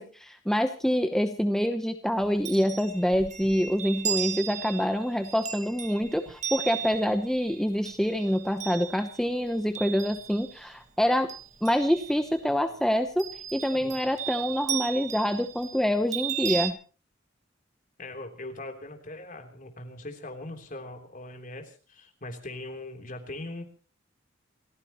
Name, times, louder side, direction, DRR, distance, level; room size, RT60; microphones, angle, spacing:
voice 1, 0.0-11.3 11.6-13.2 13.5-16.8, equal, 5° left, 6 dB, 0.9 m, -26 dB
Chime, 2.2-10.7 11.0-12.4 13.2-16.7, right 9 dB, 40° right, 1.4 m, -36 dB
voice 2, 18.0-23.6, left 2 dB, 45° left, 4 dB, 3.5 m, -40 dB
29.0 x 15.0 x 3.1 m, 0.37 s
head